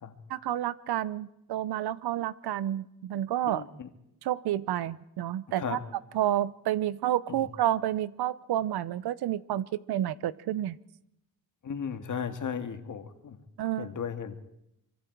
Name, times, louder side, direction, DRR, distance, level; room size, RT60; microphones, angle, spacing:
voice 1, 0.3-3.6 4.2-5.8 6.1-10.8 13.6-13.9, right 12 dB, 85° right, 18 dB, 0.8 m, -30 dB
voice 2, 3.4-3.9 5.6-5.8 7.3-7.5 11.6-13.4 13.8-14.4, left 7 dB, 50° left, 8 dB, 1.9 m, -36 dB
25.5 x 23.0 x 4.6 m, 0.81 s
cardioid pair, 100°, 38 cm